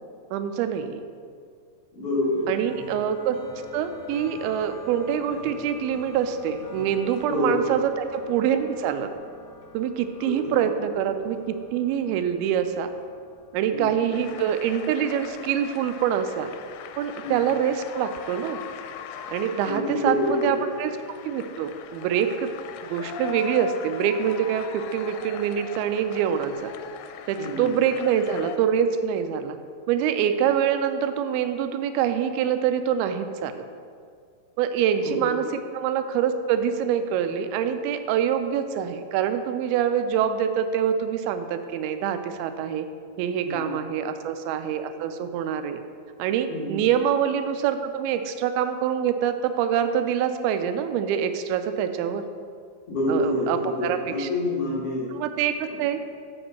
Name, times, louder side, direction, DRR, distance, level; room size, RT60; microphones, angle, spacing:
voice 1, 0.3-1.0 2.5-3.4 3.7-9.1 9.7-11.4 11.7-12.9 13.5-16.5 17.0-18.6 19.3-20.9 21.2-22.5 22.8-26.7 27.3-29.6 29.9-33.6 34.6-35.5 35.7-42.9 43.2-45.8 46.2-52.2 53.1-54.3 55.1-56.0, right 8 dB, 90° right, 9 dB, 2.5 m, -25 dB
voice 2, 1.9-2.5 7.3-7.6 10.2-10.6 13.7-13.8 17.2-17.3 19.7-20.6 27.4-27.7 35.0-35.2 43.4-43.7 46.5-46.8 52.9-55.1, left 1 dB, 45° left, -7 dB, 2.7 m, -27 dB
sound 1, 2.2-18.3, left 4 dB, 60° left, 2.2 m, -45 dB
sound 2, 14.1-28.6, left 8 dB, 90° left, 2.5 m, -40 dB
7.9 x 5.0 x 6.5 m, 2.2 s
omnidirectional pair, 4.3 m